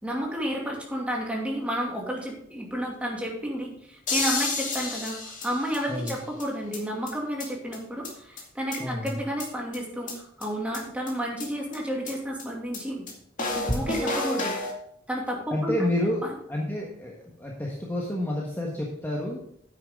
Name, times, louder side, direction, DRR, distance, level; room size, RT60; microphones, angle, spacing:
voice 1, 0.0-13.0 13.6-14.6 15.1-15.7 16.2-16.4, equal, 5° right, -2 dB, 2.5 m, -31 dB
sound 1, 4.1-6.1 6.4-6.5 6.7-6.8 7.1-7.2 7.4-7.5 7.7-7.8 8.0-8.1 8.4-9.1 9.4-9.5 9.7-9.8 10.1-10.2 10.4-10.5 10.7-10.8 11.1-11.2 11.4-11.5 11.7-11.8 12.1-12.2 12.4-12.5 12.7-12.8 13.1-13.2 13.4-14.7, left 2 dB, 40° left, 2.3 m, -30 dB
voice 2, 5.9-6.2 8.8-9.2 15.5-16.2 16.5-19.4, left 1 dB, 10° left, -3 dB, 1.4 m, -29 dB
9.9 x 9.2 x 3.7 m, 0.69 s
head